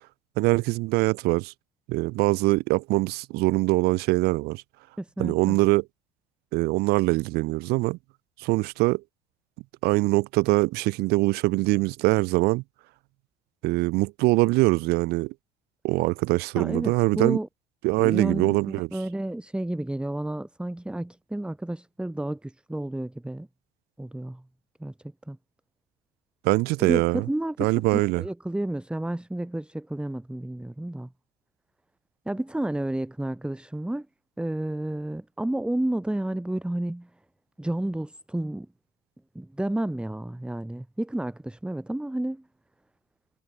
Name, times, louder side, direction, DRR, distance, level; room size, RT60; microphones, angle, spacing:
voice 1, 0.4-1.5 1.9-4.6 5.2-5.8 6.5-8.0 8.4-9.0 9.8-12.6 13.6-15.3 15.8-17.4 17.8-18.9 26.4-27.3 27.6-28.2, right 22 dB, 80° right, 0.6 m, -23 dB
voice 2, 5.0-5.6 16.6-17.5 18.0-23.5 24.0-24.4 24.8-24.9 25.3-25.4 26.8-31.1 32.3-34.1 34.4-37.1 37.6-38.7 39.3-42.4, right 1 dB, 5° right, 2.3 m, -31 dB
cardioid pair, 100°, 16 cm